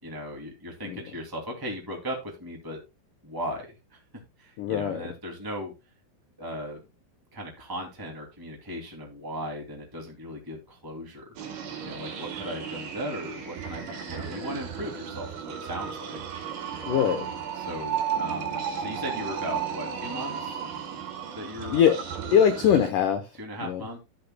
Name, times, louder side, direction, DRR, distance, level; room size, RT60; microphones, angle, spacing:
voice 1, 0.0-2.8 3.2-4.0 4.4-5.7 6.4-6.8 7.3-11.3 11.8-16.2 17.5-20.6 21.3-21.8 23.3-24.0, equal, 10° right, 0 dB, 1.3 m, -37 dB
voice 2, 4.6-5.0 16.9-17.3 21.7-22.0 22.3-23.2 23.6-23.8, left 8 dB, 85° left, 7 dB, 1.8 m, -22 dB
sound 1, 11.4-22.9, right 7 dB, 80° right, 4.4 m, -34 dB
13.5 x 8.3 x 2.2 m, 0.26 s
omnidirectional pair, 5.1 m